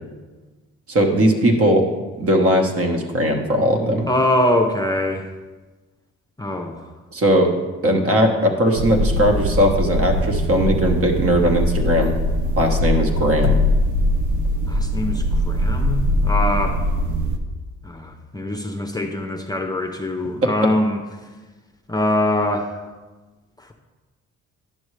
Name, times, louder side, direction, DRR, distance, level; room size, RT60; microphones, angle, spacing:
voice 1, 0.9-1.9 2.2-4.1 7.1-7.5 7.8-12.1 12.6-13.6 20.4-20.5, equal, 50° right, 3 dB, 1.2 m, -18 dB
voice 2, 4.1-5.3 6.4-6.9 14.7-16.8 17.8-21.0 21.9-22.8 23.6-23.7, left 1 dB, 15° left, 3 dB, 0.6 m, -23 dB
sound 1, 8.7-17.4, left 1 dB, 75° right, 0.7 m, -21 dB
10.5 x 6.3 x 3.2 m, 1.3 s
cardioid pair, 90°, 30 cm